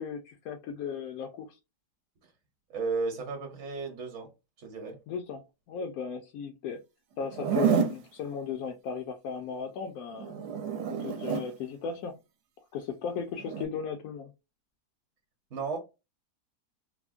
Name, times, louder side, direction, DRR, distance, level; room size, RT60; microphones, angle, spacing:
voice 1, 0.0-1.6 5.1-5.4 5.7-6.8 7.2-10.3 11.0-12.2 12.7-14.3, left 6 dB, 70° left, 0.9 m, -36 dB
voice 2, 2.7-4.3 4.6-5.0 15.5-15.8, right 4 dB, 55° right, 1.0 m, -34 dB
Zipper (clothing), 7.2-8.0 10.2-11.5 13.4-13.7, right 7 dB, 75° right, 1.1 m, -29 dB
3.5 x 2.0 x 2.4 m
omnidirectional pair, 1.7 m